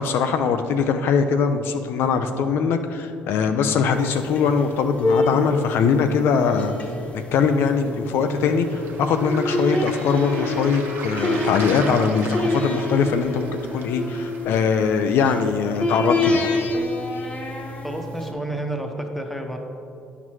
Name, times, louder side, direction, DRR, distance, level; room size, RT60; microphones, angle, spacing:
voice 1, 0.0-6.7 7.3-16.5, left 6 dB, 70° left, 7 dB, 0.4 m, -21 dB
sound 1, 3.9-18.3, left 2 dB, 35° left, 1.0 m, -27 dB
Waves surf, 8.5-14.5, right 5 dB, 60° right, 0.7 m, -39 dB
voice 2, 17.8-19.6, right 1 dB, 5° left, 3 dB, 0.8 m, -30 dB
9.4 x 5.8 x 3.1 m, 2.6 s
cardioid pair, 90°, 4 cm